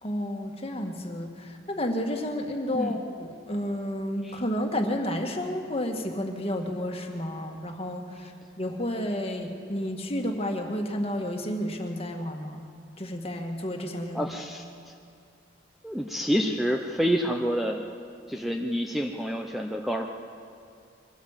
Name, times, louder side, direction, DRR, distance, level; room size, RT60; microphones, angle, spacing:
voice 1, 0.0-8.3 8.6-12.6 13.0-14.3, equal, 35° left, 3 dB, 1.8 m, -31 dB
voice 2, 14.1-14.6 15.8-17.8 18.3-20.1, equal, ahead, 2 dB, 0.8 m, -28 dB
24.0 x 16.0 x 7.4 m, 2.3 s
head